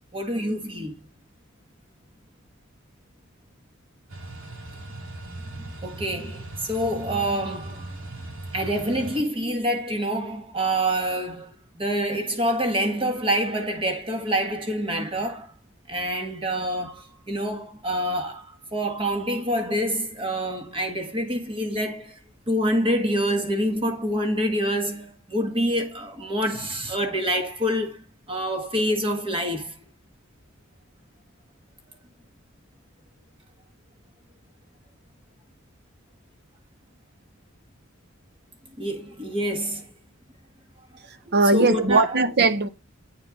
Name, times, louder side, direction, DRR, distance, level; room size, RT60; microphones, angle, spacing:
voice 1, 0.1-1.0 5.8-7.9 8.5-15.5 15.9-22.2 22.5-29.8 38.8-39.9 41.5-42.1, equal, 25° right, 1.6 m, -26 dB
sound 1, 4.1-9.2, right 2 dB, 75° right, 2.3 m, -38 dB
voice 2, 41.3-42.7, right 3 dB, 55° right, 0.9 m, -19 dB
8.9 x 4.4 x 4.9 m
head